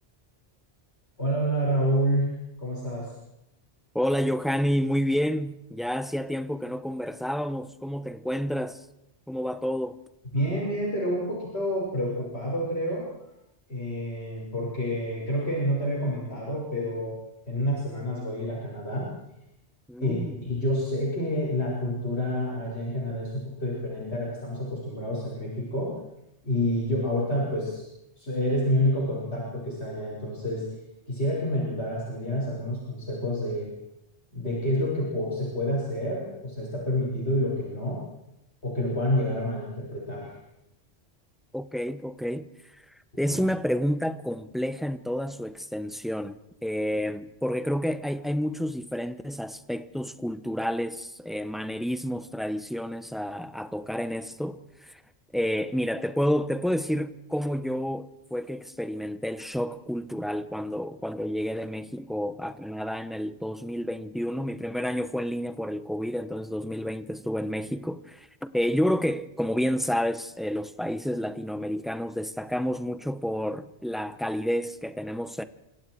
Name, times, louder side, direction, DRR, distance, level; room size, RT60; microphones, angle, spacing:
voice 1, 1.2-3.1 10.3-13.0 13.7-17.2 17.5-19.1 20.0-25.9 26.4-27.8 28.2-30.6 31.1-33.7 34.3-38.0 38.6-40.4 43.3-43.4, equal, 70° left, 6.3 m, -28 dB
voice 2, 3.9-8.8 9.3-10.0 19.9-20.4 41.5-42.5 43.2-55.0 55.3-68.3 68.5-75.4, equal, ahead, 0.9 m, -29 dB
29.5 x 26.0 x 4.7 m
omnidirectional pair, 1.1 m